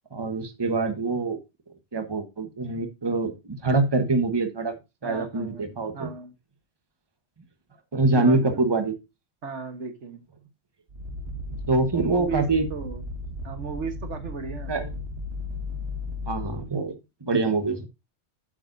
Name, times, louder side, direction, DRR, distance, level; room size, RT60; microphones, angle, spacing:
voice 1, 0.1-1.4 1.9-4.7 5.0-6.1 7.9-8.9 11.7-12.7 14.7-14.9 16.3-16.9 17.2-17.9, right 3 dB, 20° right, 7 dB, 1.2 m, -24 dB
voice 2, 5.0-6.3 8.1-8.7 9.4-10.2 11.9-13.0 13.4-14.8, right 5 dB, 85° right, 7 dB, 1.7 m, -36 dB
sound 1, 10.9-16.7, left 2 dB, 70° right, 1.6 m, -35 dB
9.0 x 8.4 x 2.7 m, 0.24 s
omnidirectional pair, 1.2 m